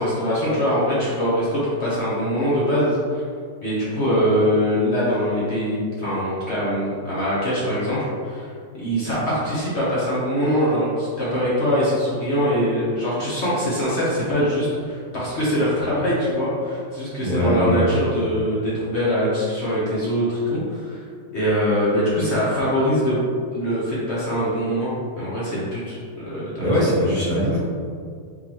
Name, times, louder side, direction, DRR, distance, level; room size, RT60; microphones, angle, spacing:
voice 1, 0.0-3.2 3.6-21.0 21.3-23.2 23.5-26.7, equal, 50° left, -8 dB, 1.0 m, -23 dB
voice 2, 17.2-17.9 26.6-27.6, left 1 dB, 25° right, -10 dB, 0.7 m, -20 dB
3.8 x 3.8 x 3.0 m, 2.2 s
omnidirectional pair, 1.8 m